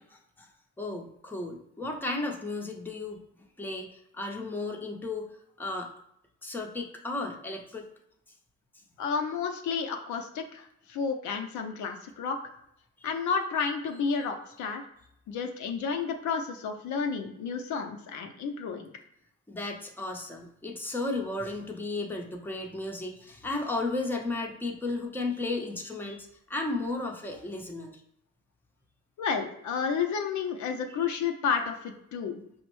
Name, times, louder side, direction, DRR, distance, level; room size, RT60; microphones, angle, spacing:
voice 1, 0.8-3.2 3.6-5.9 6.4-7.8 13.0-13.1 19.5-28.0, left 2 dB, 5° left, 1 dB, 0.7 m, -34 dB
voice 2, 9.0-12.4 13.0-14.8 15.3-18.9 29.2-32.4, left 6 dB, 70° left, 4 dB, 0.6 m, -31 dB
5.1 x 2.1 x 3.0 m, 0.74 s
cardioid pair, 90°, 30 cm